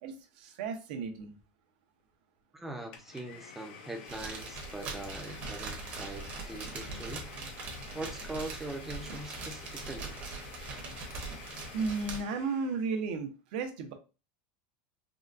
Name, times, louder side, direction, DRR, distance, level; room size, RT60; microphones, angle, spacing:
voice 1, 0.0-1.4 11.7-13.9, right 4 dB, 65° right, 5 dB, 0.7 m, -34 dB
voice 2, 2.5-7.2 7.9-10.2, right 2 dB, 5° right, 3 dB, 0.5 m, -42 dB
Domestic sounds home sounds, 2.9-12.9, left 6 dB, 65° left, 0.6 m, -50 dB
sound 1, 4.1-12.2, right 3 dB, 30° right, 0.8 m, -41 dB
3.6 x 2.2 x 2.5 m, 0.32 s
supercardioid pair, 170°, 5 cm